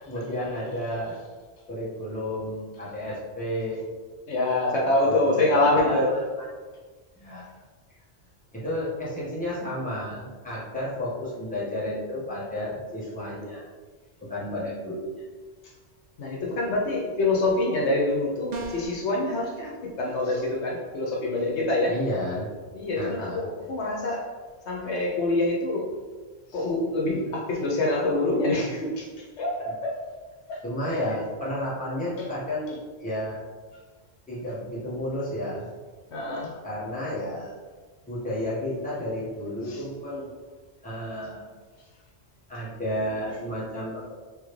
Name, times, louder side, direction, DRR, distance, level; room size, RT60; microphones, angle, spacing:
voice 1, 0.1-1.2 1.7-3.9 5.0-6.0 6.4-6.5 7.2-7.5 8.5-13.7 14.2-15.1 21.9-22.5 22.9-23.4 30.6-33.4 34.3-35.7 36.6-37.5 38.1-40.3 40.8-41.4 42.5-44.1, left 1 dB, 5° left, -10 dB, 1.3 m, -32 dB
voice 2, 4.3-6.2 16.2-19.7 20.0-22.0 22.7-24.2 24.7-25.9 26.5-29.1 29.4-30.0 30.5-30.6 30.9-31.1 32.2-32.3 36.1-36.5 39.6-39.9, left 2 dB, 80° left, -2 dB, 1.1 m, -25 dB
sound 1, 18.5-19.0, right 2 dB, 55° right, 0.5 m, -34 dB
3.7 x 3.1 x 3.2 m, 1.4 s
omnidirectional pair, 1.2 m